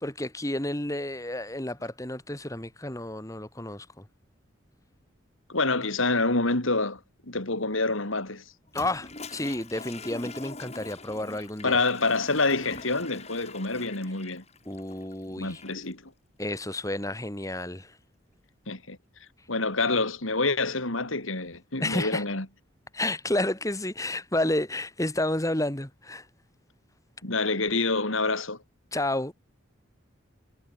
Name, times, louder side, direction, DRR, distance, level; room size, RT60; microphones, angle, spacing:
voice 1, 0.0-4.0 8.7-11.8 14.7-15.6 16.4-18.0 21.8-22.2 22.9-26.3 28.9-29.3, left 1 dB, 15° left, 2.2 m, -31 dB
voice 2, 5.5-8.4 11.6-14.4 15.3-16.1 18.7-19.0 19.5-22.5 27.2-28.6, left 3 dB, 85° left, 4.5 m, -27 dB
Toilet flush, 8.7-15.9, left 3 dB, 30° left, 4.9 m, -44 dB
head